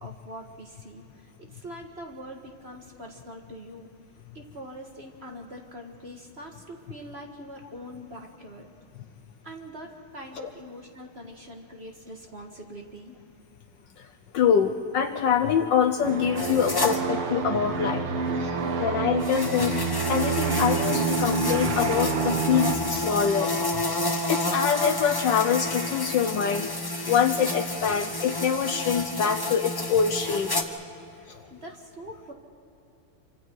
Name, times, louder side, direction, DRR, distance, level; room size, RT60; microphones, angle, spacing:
voice 1, 0.0-1.0 1.4-3.9 4.3-8.7 9.4-13.2 31.1-32.3, equal, 30° right, 2 dB, 1.7 m, -43 dB
voice 2, 14.3-18.0 18.4-23.5 24.3-26.7 27.1-30.5 31.3-31.4, left 7 dB, 65° left, 6 dB, 1.3 m, -25 dB
sound 1, 16.0-22.8, right 4 dB, 70° right, 2.2 m, -27 dB
sound 2, 16.4-17.0 19.2-30.6, left 2 dB, 15° left, 0.7 m, -30 dB
28.0 x 25.0 x 4.6 m, 2.8 s
omnidirectional pair, 2.4 m